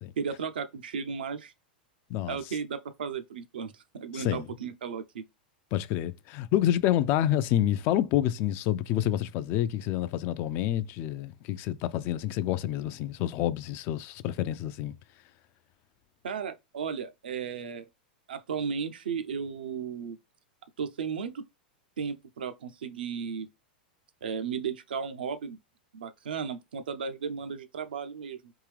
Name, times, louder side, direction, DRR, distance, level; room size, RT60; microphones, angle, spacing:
voice 1, 0.2-1.5 2.3-5.2 16.2-17.9 18.3-20.2 20.8-21.4 22.0-23.5 24.2-25.6 25.9-28.5, right 6 dB, 80° right, 0.6 m, -35 dB
voice 2, 4.1-4.5 5.7-14.9, left 12 dB, 45° left, 0.4 m, -28 dB
3.6 x 2.9 x 3.2 m
hypercardioid pair, 105°, 5 cm